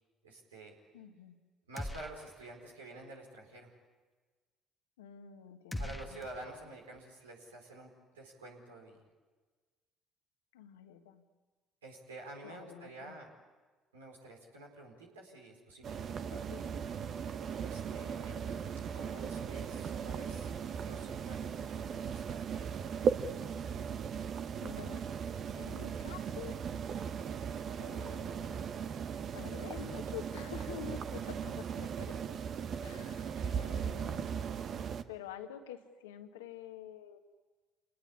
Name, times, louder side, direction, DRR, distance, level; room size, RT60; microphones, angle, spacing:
voice 1, 0.2-0.7 1.7-3.7 5.8-9.0 11.8-13.3 13.9-16.0 17.6-18.4 18.9-22.7 29.8-30.0 33.2-33.7, right 2 dB, 85° right, 0 dB, 4.7 m, -49 dB
voice 2, 0.9-1.4 5.0-6.2 10.5-11.2 12.4-13.2 16.3-16.8 24.6-25.0 25.5-26.6 27.8-28.6 29.3-32.4 32.8-34.3 35.1-37.2, left 9 dB, 80° left, 6 dB, 1.6 m, -48 dB
sound 1, 1.8-2.6 2.9-3.0 5.7-7.0, left 1 dB, 10° left, 1.3 m, -42 dB
sound 2, 15.8-35.0, right 7 dB, 50° right, 1.1 m, -38 dB
27.5 x 19.5 x 9.9 m, 1.4 s
hypercardioid pair, 55°, 0 cm